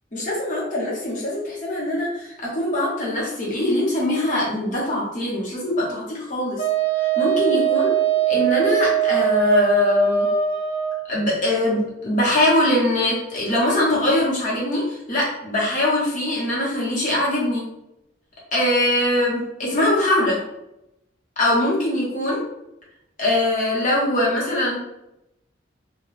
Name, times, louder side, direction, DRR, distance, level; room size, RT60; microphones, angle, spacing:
voice 1, 0.1-6.6 7.2-7.9 8.3-10.3 11.1-17.6 18.5-20.4 21.4-22.4 23.2-24.8, left 1 dB, 45° left, -5 dB, 0.9 m, -22 dB
Wind instrument woodwind instrument, 6.6-11.0, right 7 dB, 65° left, 0.4 m, -21 dB
2.2 x 2.2 x 3.1 m, 0.86 s
head